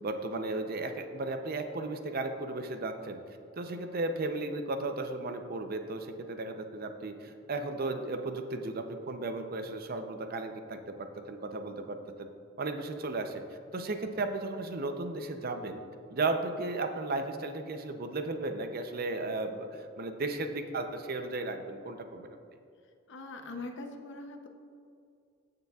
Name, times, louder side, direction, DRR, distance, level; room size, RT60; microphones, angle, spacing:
voice 1, 0.0-3.2 3.6-12.3 12.6-13.4 13.7-15.8 16.1-22.4, right 2 dB, 50° right, 7 dB, 0.6 m, -35 dB
voice 2, 23.1-24.5, left 2 dB, 65° left, 4 dB, 0.8 m, -42 dB
14.5 x 6.7 x 2.4 m, 2.4 s
head